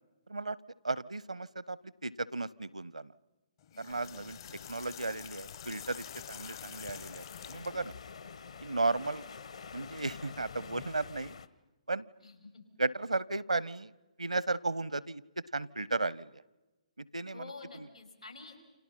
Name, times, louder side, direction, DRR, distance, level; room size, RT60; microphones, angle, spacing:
voice 1, 0.8-3.1 3.8-4.4 4.7-7.9 8.6-9.2 9.7-11.4 11.9-12.1 12.8-13.9 14.2-16.3 17.0-17.4, right 3 dB, 80° right, 22 dB, 0.8 m, -35 dB
sound 1, 3.6-7.9, left 11 dB, 40° left, 0.8 m, -48 dB
voice 2, 3.7-4.4 12.2-12.5 17.3-18.6, left 3 dB, 85° left, 5 dB, 6.2 m, -49 dB
sound 2, 3.9-11.5, left 6 dB, 60° left, 1.2 m, -48 dB
29.5 x 27.5 x 5.7 m, 1.1 s
figure-of-eight pair, 130°, 4 cm